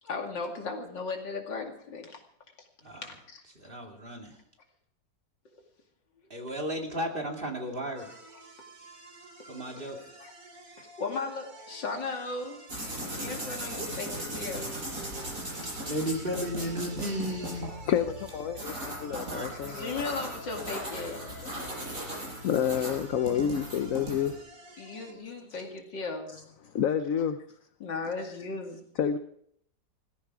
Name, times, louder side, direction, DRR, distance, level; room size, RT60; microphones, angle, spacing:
voice 1, 0.0-2.2 3.0-3.4 5.5-5.6 6.4-6.5 9.6-9.9 10.2-10.3 10.7-12.6 13.1-14.1 14.3-14.7 17.7-17.9 18.5-18.7 19.4-21.3 24.8-26.3 27.8-28.8, left 4 dB, 90° left, 3 dB, 3.1 m, -37 dB
voice 2, 3.5-4.4 6.3-8.1 9.4-10.0 15.9-17.7 19.1-19.7, equal, 30° right, 1 dB, 2.8 m, -34 dB
sound 1, 8.0-25.1, right 2 dB, 75° right, 3.6 m, -49 dB
sound 2, 12.7-24.4, right 1 dB, 45° right, 7.4 m, -38 dB
voice 3, 17.9-20.0 21.4-21.7 22.0-24.4 26.7-27.4 29.0-29.2, left 8 dB, 60° left, 10 dB, 1.0 m, -29 dB
18.5 x 15.5 x 4.8 m, 0.68 s
omnidirectional pair, 1.9 m